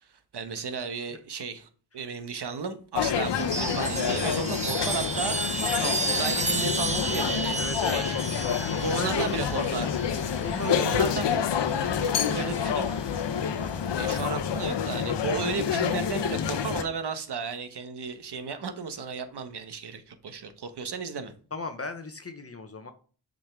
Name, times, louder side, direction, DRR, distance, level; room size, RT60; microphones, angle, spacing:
voice 1, 0.0-5.4 5.8-7.6 7.8-8.3 8.8-9.9 10.6-11.5 11.7-13.0 14.0-21.3, right 5 dB, 60° right, 1.1 m, -34 dB
sound 1, 3.0-16.8, left 8 dB, 70° left, 0.8 m, -28 dB
Chime, 3.3-11.1 12.3-12.9, right 2 dB, 15° right, 0.9 m, -32 dB
voice 2, 7.6-8.0 8.7-9.4 10.4-11.1 21.5-22.9, left 2 dB, 30° left, 0.8 m, -35 dB
7.1 x 5.3 x 3.5 m
cardioid pair, 55°, 45 cm